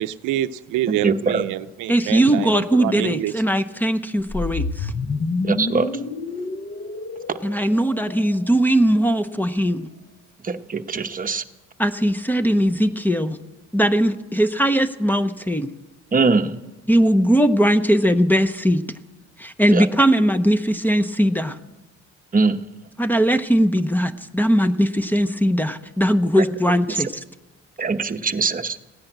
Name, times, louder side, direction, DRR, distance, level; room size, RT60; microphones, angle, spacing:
voice 1, 0.0-3.3, right 13 dB, 85° right, 13 dB, 0.6 m, -26 dB
voice 2, 1.0-1.4 5.4-5.9 10.4-11.4 16.1-16.6 19.7-19.8 22.3-22.6 27.8-28.5, right 4 dB, 30° right, 7 dB, 0.9 m, -21 dB
voice 3, 1.9-4.9 7.4-9.9 11.8-13.4 13.7-15.7 16.9-18.8 19.4-21.6 23.0-27.2, equal, 5° left, 10 dB, 0.7 m, -19 dB
sound 1, 4.2-8.5, left 3 dB, 35° left, 1.0 m, -28 dB
16.5 x 10.5 x 8.0 m, 1.1 s
cardioid pair, 90°, 30 cm